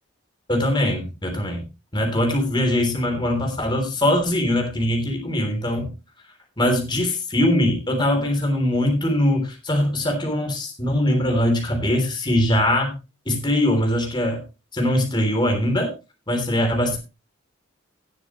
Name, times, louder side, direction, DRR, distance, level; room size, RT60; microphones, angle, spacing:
voice 1, 0.5-1.6 1.9-5.9 6.6-13.0 13.2-14.4 14.7-15.9 16.3-17.0, left 1 dB, 25° left, 2 dB, 3.3 m, -22 dB
18.5 x 7.3 x 3.0 m, 0.29 s
head